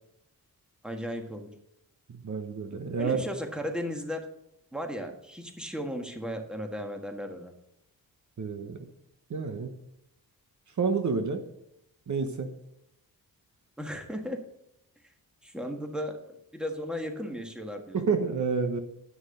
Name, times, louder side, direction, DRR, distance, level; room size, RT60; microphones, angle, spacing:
voice 1, 0.8-1.5 3.0-4.2 4.7-7.5 13.8-14.4 15.4-18.0, equal, ahead, 4 dB, 1.6 m, -35 dB
voice 2, 2.1-3.2 8.4-8.8 9.3-9.7 10.8-11.4 12.1-12.5 17.9-18.8, right 5 dB, 50° right, 7 dB, 1.0 m, -29 dB
9.7 x 6.3 x 6.5 m, 0.79 s
cardioid pair, 90°, 37 cm